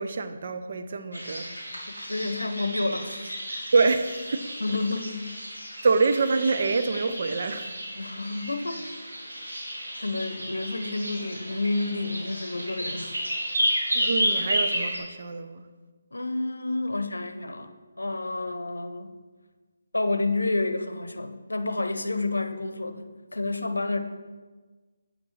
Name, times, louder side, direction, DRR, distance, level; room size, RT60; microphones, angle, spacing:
voice 1, 0.0-1.5 3.7-4.4 5.8-7.8 13.9-15.6, right 4 dB, 50° right, 8 dB, 0.7 m, -25 dB
sound 1, 1.1-15.0, equal, 90° right, 2.6 m, -32 dB
voice 2, 2.1-3.3 4.6-5.3 8.0-8.9 10.0-13.2 16.1-17.7 18.0-19.1 19.9-24.0, left 2 dB, 80° left, 9 dB, 0.7 m, -29 dB
8.5 x 6.1 x 4.3 m, 1.4 s
figure-of-eight pair, 150°, 0 cm